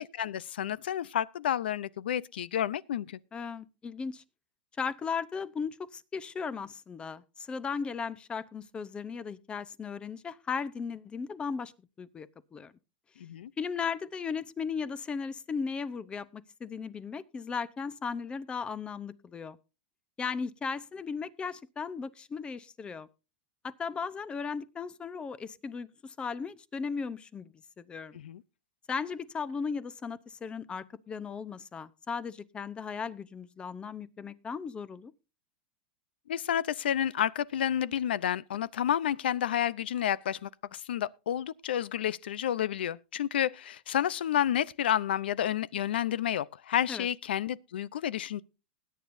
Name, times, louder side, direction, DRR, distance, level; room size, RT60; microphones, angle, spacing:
voice 1, 0.0-3.2 13.2-13.5 28.1-28.4 36.3-48.4, left 10 dB, 85° left, 0.6 m, -30 dB
voice 2, 3.3-4.2 4.8-11.7 12.0-12.7 13.6-19.6 20.2-23.1 23.6-28.2 28.9-35.1 46.9-47.1, left 5 dB, 20° left, 0.7 m, -36 dB
20.5 x 9.4 x 2.6 m
supercardioid pair, 125°, 5 cm